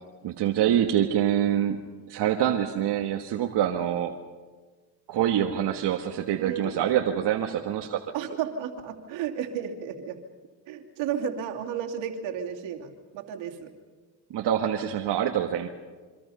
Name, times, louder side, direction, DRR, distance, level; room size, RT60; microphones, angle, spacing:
voice 1, 0.2-4.1 5.1-8.0 14.3-15.7, right 10 dB, 65° right, 2 dB, 1.6 m, -25 dB
voice 2, 6.4-6.7 8.1-10.2 10.7-13.7, right 8 dB, 80° right, 2 dB, 2.8 m, -33 dB
26.5 x 25.0 x 5.6 m, 1.4 s
cardioid pair, 85°, 44 cm